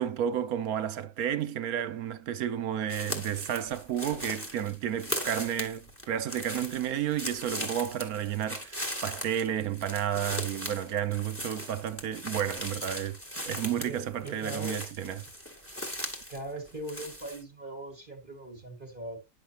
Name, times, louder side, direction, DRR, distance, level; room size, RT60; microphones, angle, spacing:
voice 1, 0.0-13.2 13.5-15.2, right 10 dB, 70° right, 1.2 m, -31 dB
sound 1, 2.9-16.4 16.7-17.4, equal, 10° left, 1.7 m, -38 dB
voice 2, 13.7-14.9 16.3-19.2, right 1 dB, 35° right, 1.8 m, -40 dB
9.9 x 6.3 x 2.9 m
omnidirectional pair, 1.6 m